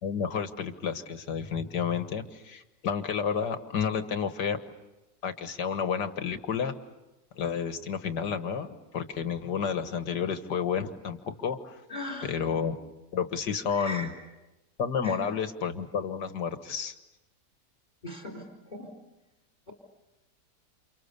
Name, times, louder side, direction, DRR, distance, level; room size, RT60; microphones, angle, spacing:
voice 1, 0.0-4.6 5.2-6.7 7.4-11.8 12.2-12.8 13.1-14.1 14.8-17.0, left 7 dB, 85° left, 9 dB, 2.1 m, -31 dB
voice 2, 11.9-12.3 13.7-14.1 15.0-15.2 18.0-18.9, left 1 dB, 25° left, 4 dB, 4.2 m, -38 dB
29.5 x 28.5 x 6.8 m, 1.0 s
omnidirectional pair, 1.8 m